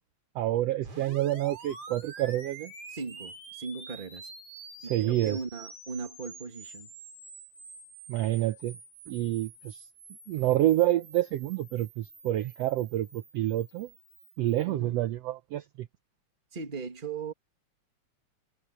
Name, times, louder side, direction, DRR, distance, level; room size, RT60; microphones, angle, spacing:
voice 1, 0.3-2.7 4.8-5.4 8.1-8.8 9.1-9.8 10.3-13.9 14.4-15.9, right 14 dB, 70° right, 1.6 m, -28 dB
sound 1, 0.8-14.7, right 3 dB, 50° right, 6.4 m, -48 dB
voice 2, 2.9-4.3 4.8-6.9 14.6-15.0 16.5-17.3, right 4 dB, 20° right, 1.7 m, -38 dB
omnidirectional pair, 3.4 m